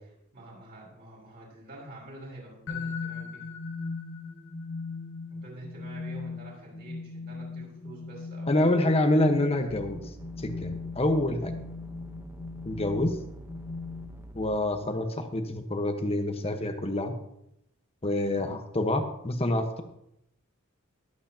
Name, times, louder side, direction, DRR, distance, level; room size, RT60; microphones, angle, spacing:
voice 1, 0.0-3.5 5.3-9.5 18.3-18.6, right 2 dB, 50° right, -5 dB, 5.5 m, -47 dB
sound 1, 2.7-14.4, left 4 dB, 65° left, 1.5 m, -39 dB
voice 2, 8.5-10.0 10.4-11.5 12.6-13.2 14.3-17.1 18.0-19.8, left 1 dB, 30° left, 6 dB, 1.2 m, -27 dB
sound 2, 9.7-14.6, right 1 dB, 10° right, 0.9 m, -46 dB
21.5 x 8.4 x 2.9 m, 0.78 s
head